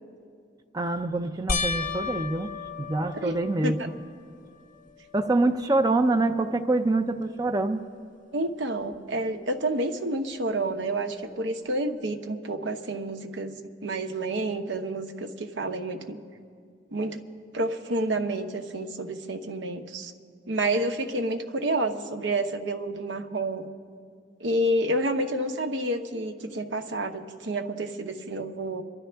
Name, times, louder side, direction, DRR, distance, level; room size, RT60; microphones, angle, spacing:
voice 1, 0.7-2.5 2.8-3.8 5.1-7.8, right 2 dB, 20° right, 6 dB, 0.4 m, -25 dB
sound 1, 1.5-4.1 4.7-5.3 5.6-5.7 8.9-9.0, left 5 dB, 45° left, 0.6 m, -33 dB
voice 2, 8.3-16.2 16.9-17.2 17.5-20.1 20.5-23.7 24.4-28.8, right 1 dB, 80° right, 5 dB, 0.9 m, -29 dB
27.0 x 11.5 x 3.4 m, 2.2 s
head